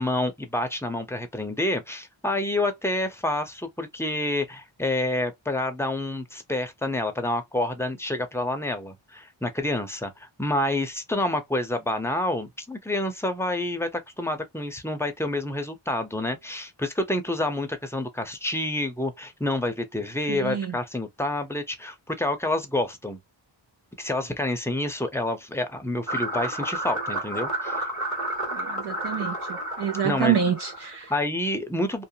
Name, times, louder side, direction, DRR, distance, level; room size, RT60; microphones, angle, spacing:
voice 1, 0.0-23.2 24.0-27.8 30.0-30.4 31.1-32.0, left 1 dB, 5° left, 0.6 m, -28 dB
voice 2, 20.3-20.7 28.5-29.3 29.8-31.1, right 8 dB, 60° right, 0.6 m, -27 dB
sound 1, 26.1-31.1, right 1 dB, 40° right, 1.2 m, -31 dB
2.5 x 2.1 x 2.7 m
wide cardioid pair, 80°, 47 cm